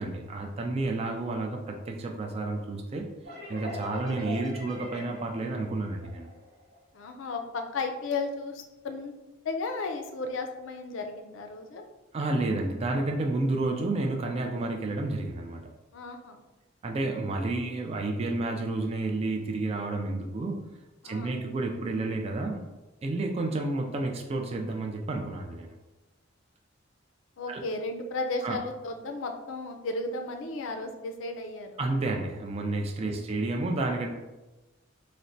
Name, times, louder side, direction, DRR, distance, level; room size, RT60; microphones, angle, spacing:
voice 1, 0.0-3.1 3.5-6.3 12.1-15.7 16.8-20.6 21.0-22.6 23.0-25.7 27.5-27.6 28.4-28.6 31.8-34.1, right 2 dB, 30° right, 2 dB, 0.3 m, -30 dB
sound 1, 3.2-6.8, left 2 dB, 50° right, 1.0 m, -42 dB
voice 2, 6.9-9.1 9.4-11.8 15.9-16.4 21.0-21.4 27.4-31.8 33.0-33.3, left 3 dB, 70° left, 5 dB, 0.4 m, -34 dB
4.0 x 2.1 x 2.6 m, 1.1 s
head